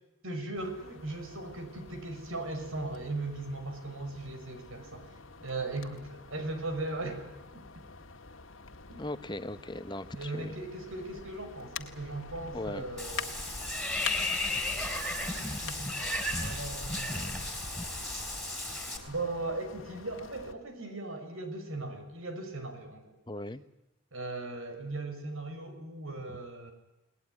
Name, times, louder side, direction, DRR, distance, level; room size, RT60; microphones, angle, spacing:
voice 1, 0.2-7.2 7.5-7.9 8.9-9.0 10.1-13.4 14.8-17.5 19.1-23.2 24.1-26.7, right 2 dB, 80° right, 6 dB, 6.2 m, -38 dB
sound 1, 0.6-20.5, left 4 dB, 75° left, 1.9 m, -46 dB
voice 2, 9.0-10.5 12.5-12.8 23.3-23.6, left 1 dB, 20° left, 12 dB, 1.0 m, -38 dB
Water / Bathtub (filling or washing), 13.0-19.0, left 2 dB, ahead, 3.9 m, -34 dB
29.5 x 20.0 x 9.7 m, 0.95 s
head